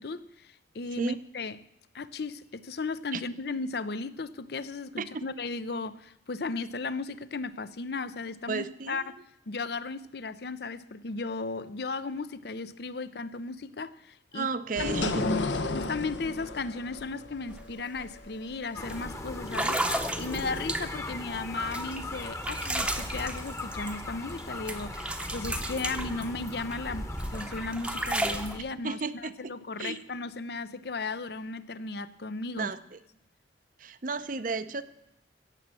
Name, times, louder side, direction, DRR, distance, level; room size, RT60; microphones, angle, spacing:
voice 1, 0.0-1.6 1.9-14.5 14.8-15.2 15.7-32.7, left 3 dB, 60° left, 0.6 m, -36 dB
voice 2, 8.5-9.1 14.3-15.3 28.8-29.5 29.8-30.0 32.6-32.8 33.8-34.8, right 4 dB, 45° right, 0.6 m, -33 dB
sound 1, 14.8-20.0, left 2 dB, 75° left, 1.0 m, -33 dB
sound 2, 17.5-17.6 18.0-18.3 18.9-19.0 19.5-21.1 21.7-24.4 24.7-26.8 27.2-28.5, right 1 dB, 5° right, 0.8 m, -33 dB
sound 3, 18.7-28.6, left 1 dB, 15° left, 1.0 m, -38 dB
16.5 x 7.3 x 7.5 m
head